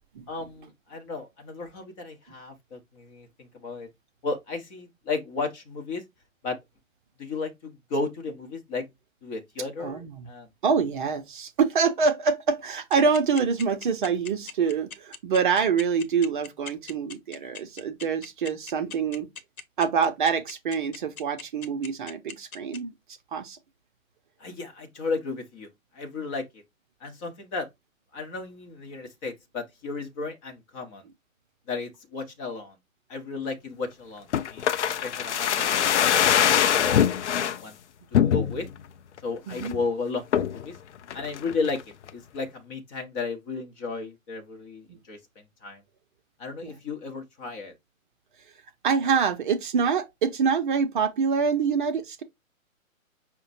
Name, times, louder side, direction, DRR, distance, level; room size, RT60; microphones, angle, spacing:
voice 1, 0.3-3.9 4.2-6.0 6.4-6.6 7.2-8.9 9.2-10.5 24.4-25.7 25.9-26.6 27.0-27.7 28.1-31.1 31.7-32.8 33.1-37.8 38.1-38.7 39.2-40.8 41.1-41.8 42.1-45.8 46.4-47.7, left 4 dB, 20° left, 0.8 m, -34 dB
voice 2, 9.8-10.3 10.6-19.3 19.8-23.6 39.5-39.7 44.9-45.0 46.6-46.8 48.8-52.2, right 6 dB, 35° right, 0.7 m, -26 dB
sound 1, 12.7-22.8, left 5 dB, 85° left, 1.1 m, -39 dB
sound 2, 34.3-37.6 38.1-38.8 39.2-39.3 39.5-39.8 40.3-40.6 41.1-41.8 42.1-42.2, left 9 dB, 55° left, 0.5 m, -23 dB
5.7 x 2.2 x 4.0 m
figure-of-eight pair, 130°, 41 cm